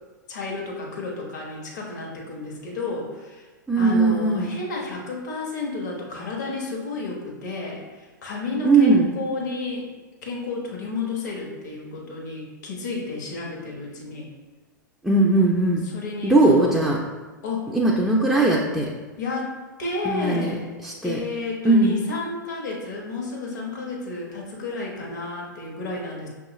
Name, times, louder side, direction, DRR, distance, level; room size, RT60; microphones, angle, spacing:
voice 1, 0.3-3.4 3.7-9.9 10.2-14.3 15.8-16.7 17.4-17.7 19.2-20.7 21.0-26.3, left 3 dB, 60° left, -1 dB, 1.0 m, -31 dB
voice 2, 3.7-4.5 8.6-9.1 15.0-15.8 16.2-17.0 17.7-18.9 20.0-20.5 20.8-21.2 21.6-22.0, right 2 dB, ahead, -4 dB, 0.4 m, -19 dB
5.9 x 2.3 x 3.0 m, 1.3 s
figure-of-eight pair, 100°, 11 cm